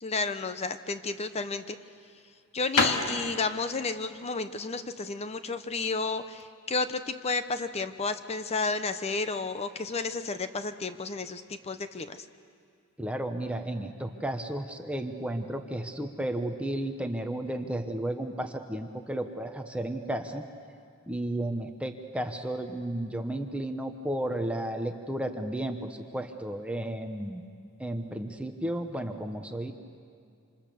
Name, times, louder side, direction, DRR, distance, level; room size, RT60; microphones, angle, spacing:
voice 1, 0.0-1.8 2.5-12.2, left 4 dB, 30° left, 10 dB, 0.7 m, -32 dB
sound 1, 0.9-6.5, left 3 dB, 80° left, 2.4 m, -32 dB
voice 2, 13.0-20.4 21.1-27.4 27.8-29.7, right 1 dB, 5° right, 5 dB, 1.0 m, -33 dB
27.0 x 26.5 x 6.9 m, 2.3 s
head